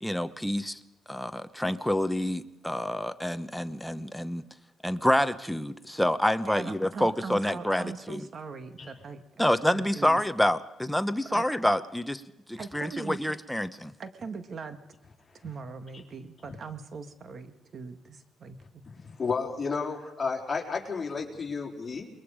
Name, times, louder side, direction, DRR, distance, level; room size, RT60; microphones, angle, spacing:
voice 1, 0.0-0.8 1.1-4.4 4.8-8.3 9.4-12.2 12.5-13.9, left 1 dB, 5° left, 10 dB, 1.0 m, -27 dB
voice 2, 6.5-9.4 9.7-10.2 11.3-11.4 12.6-13.2 14.0-14.8 15.4-18.8, right 5 dB, 50° right, 8 dB, 1.8 m, -41 dB
voice 3, 18.8-22.1, left 5 dB, 30° left, 0 dB, 4.0 m, -32 dB
28.5 x 21.5 x 5.1 m, 0.89 s
cardioid pair, 90°, 0 cm